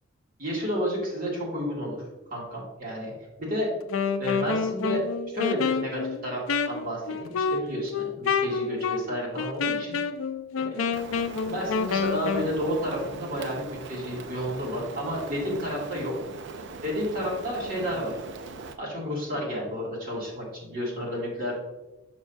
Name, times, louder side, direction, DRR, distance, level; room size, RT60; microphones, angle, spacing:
voice 1, 0.4-2.0 2.3-3.1 3.4-3.7 4.2-5.0 5.3-10.0 10.6-10.8 11.5-16.1 16.8-18.1 18.8-21.5, equal, 45° right, -4 dB, 2.2 m, -31 dB
Wind instrument woodwind instrument, 3.8-12.5, left 5 dB, 75° left, 0.4 m, -28 dB
Rain, 10.9-18.8, right 4 dB, 60° right, 0.5 m, -41 dB
6.4 x 5.9 x 2.7 m, 1.1 s
head